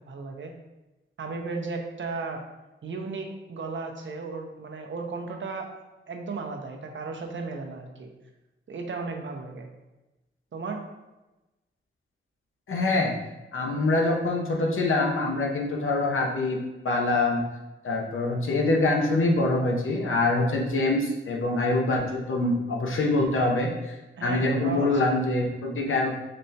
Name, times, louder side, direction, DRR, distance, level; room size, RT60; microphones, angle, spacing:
voice 1, 0.1-0.5 1.2-2.4 2.8-5.7 6.1-8.1 8.7-9.7 10.5-10.8 24.2-25.2 25.8-26.0, right 4 dB, 65° right, 3 dB, 0.6 m, -35 dB
voice 2, 12.7-13.1 13.5-16.6 16.8-17.4 17.8-24.0 24.2-26.2, left 2 dB, 75° left, 0 dB, 0.8 m, -24 dB
4.1 x 3.2 x 2.8 m, 1.0 s
wide cardioid pair, 90°, 21 cm